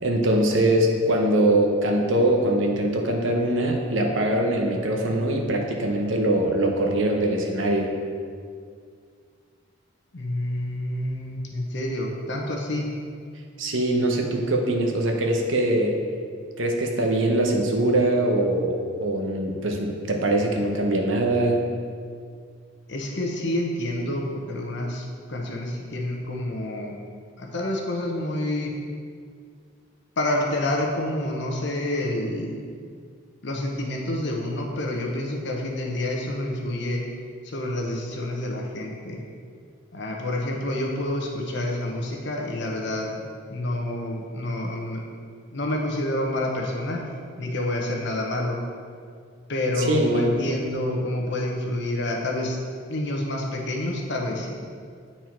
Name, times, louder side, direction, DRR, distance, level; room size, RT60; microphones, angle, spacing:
voice 1, 0.0-7.9 13.6-16.0 16.6-21.6 49.8-50.4, right 1 dB, 70° right, 2 dB, 1.0 m, -22 dB
voice 2, 10.1-12.9 22.9-27.0 27.4-28.8 30.2-32.6 33.4-37.0 37.4-39.2 39.9-43.2 43.5-45.0 45.5-47.1 47.4-48.6 49.5-52.6 52.9-54.6, left 1 dB, 60° left, 0 dB, 1.0 m, -28 dB
8.9 x 4.4 x 4.5 m, 2.1 s
head